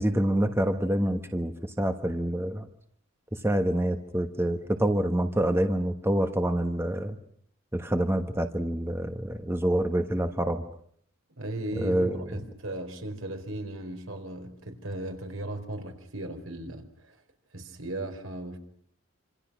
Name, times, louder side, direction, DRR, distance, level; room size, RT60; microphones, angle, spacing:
voice 1, 0.0-2.7 3.4-7.1 7.7-10.6 11.8-12.2, right 1 dB, 10° right, 7 dB, 1.3 m, -26 dB
voice 2, 11.4-17.2 17.5-18.6, right 1 dB, 70° right, 6 dB, 4.5 m, -36 dB
27.0 x 26.5 x 6.2 m, 0.63 s
head